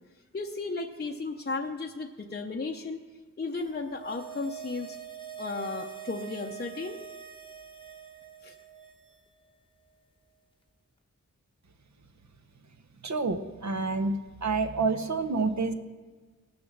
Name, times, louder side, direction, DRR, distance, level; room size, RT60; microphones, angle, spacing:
voice 1, 0.3-3.0 3.4-5.0 5.4-7.0 8.4-8.5, left 3 dB, 30° left, 1 dB, 0.7 m, -34 dB
sound 1, 3.7-9.2 9.4-9.5, right 9 dB, 15° left, 1.0 m, -44 dB
voice 2, 13.0-14.1 14.4-15.7, right 4 dB, 55° right, 8 dB, 0.9 m, -28 dB
18.0 x 6.9 x 6.5 m, 1.4 s
wide cardioid pair, 95°, 33 cm